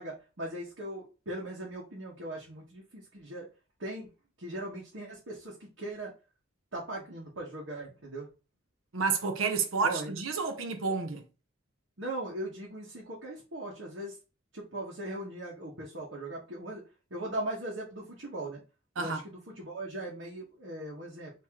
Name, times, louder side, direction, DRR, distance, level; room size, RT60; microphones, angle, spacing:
voice 1, 0.0-3.5 3.8-4.1 4.4-6.1 6.7-8.3 9.8-10.2 12.0-14.2 14.5-16.8 17.1-18.6 19.0-21.3, right 1 dB, 70° right, 1.3 m, -39 dB
voice 2, 8.9-11.2 19.0-19.2, right 5 dB, 85° right, 0.8 m, -30 dB
3.7 x 2.9 x 4.6 m
head